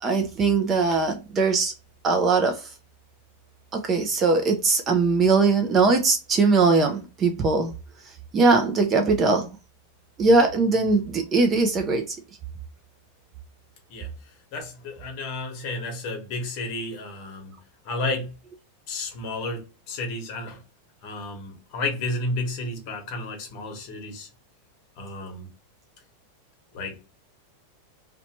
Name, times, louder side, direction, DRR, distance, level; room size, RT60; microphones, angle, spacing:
voice 1, 0.0-1.7 2.0-2.7 3.7-7.7 8.3-9.5 10.2-12.2, right 3 dB, 20° right, 0.4 m, -21 dB
voice 2, 14.5-18.3 18.9-20.6 21.0-24.3 25.0-25.5 26.7-27.0, left 2 dB, 40° left, 1.0 m, -32 dB
2.7 x 2.2 x 2.8 m
supercardioid pair, 165°, 0 cm